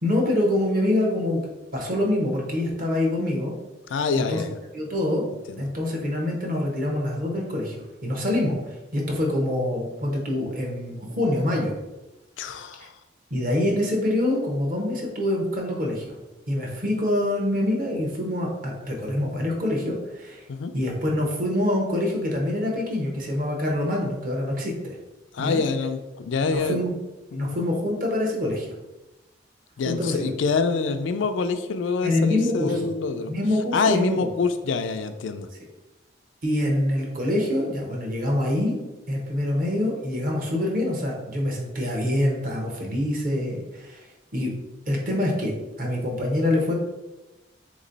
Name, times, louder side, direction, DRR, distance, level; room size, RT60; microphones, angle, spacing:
voice 1, 0.0-1.4 1.7-3.5 4.3-4.4 4.7-5.2 5.6-7.7 8.0-11.7 13.3-16.1 16.5-20.4 20.7-25.0 25.4-25.6 26.4-26.9 27.4-28.7 29.9-30.3 32.0-32.9 33.3-34.3 36.4-38.8 39.1-44.1 44.3-44.5 44.9-46.7, left 1 dB, 50° right, -1 dB, 1.0 m, -25 dB
voice 2, 3.9-4.5 5.5-5.6 12.4-12.9 20.5-20.7 25.3-26.8 27.3-27.6 29.8-33.3 33.7-35.5, left 4 dB, 80° left, 8 dB, 0.4 m, -26 dB
3.7 x 3.1 x 3.9 m, 1.0 s
head